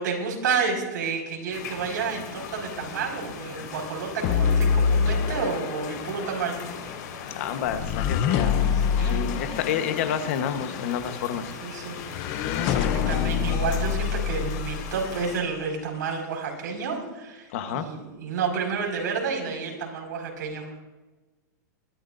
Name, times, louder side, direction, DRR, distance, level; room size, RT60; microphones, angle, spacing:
voice 1, 0.0-6.6 8.3-8.5 8.9-9.2 11.6-20.7, right 5 dB, 85° right, 1 dB, 5.3 m, -30 dB
sound 1, 1.5-15.4, left 5 dB, 75° left, 4.6 m, -39 dB
sound 2, 4.2-15.5, left 7 dB, 30° left, 0.6 m, -27 dB
voice 2, 7.3-8.6 9.0-11.5 12.7-12.9 17.5-17.9, left 8 dB, 45° left, 8 dB, 1.2 m, -29 dB
22.5 x 13.0 x 2.6 m, 1.2 s
supercardioid pair, 180°, 10 cm